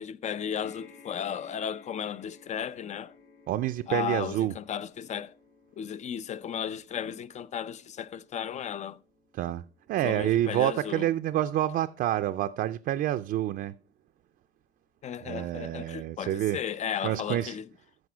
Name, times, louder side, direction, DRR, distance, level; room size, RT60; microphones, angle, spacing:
voice 1, 0.0-3.1 3.9-5.3 5.8-9.0 10.0-11.1 15.0-17.7, left 8 dB, 45° left, 0.6 m, -35 dB
sound 1, 0.6-15.1 15.9-16.0 16.3-16.4, left 5 dB, 75° left, 5.2 m, -59 dB
voice 2, 3.5-4.5 9.3-9.6 9.9-13.7 15.2-16.6 17.0-17.6, right 13 dB, 65° right, 0.5 m, -28 dB
14.0 x 5.1 x 5.0 m
cardioid pair, 110°, 17 cm